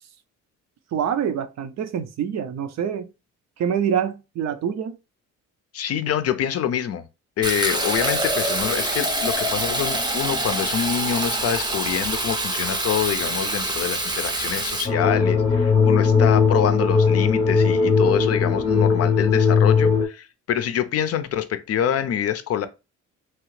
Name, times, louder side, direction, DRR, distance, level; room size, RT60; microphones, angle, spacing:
voice 1, 0.9-3.1 3.6-5.0, right 8 dB, 60° right, 0.5 m, -25 dB
voice 2, 5.7-7.1 7.4-22.7, left 9 dB, 55° left, 0.5 m, -26 dB
Fill (with liquid), 7.4-14.9, right 1 dB, 15° right, 0.6 m, -25 dB
sound 1, 14.8-20.1, left 5 dB, 20° left, 0.7 m, -18 dB
2.9 x 2.4 x 3.1 m
cardioid pair, 90°, 30 cm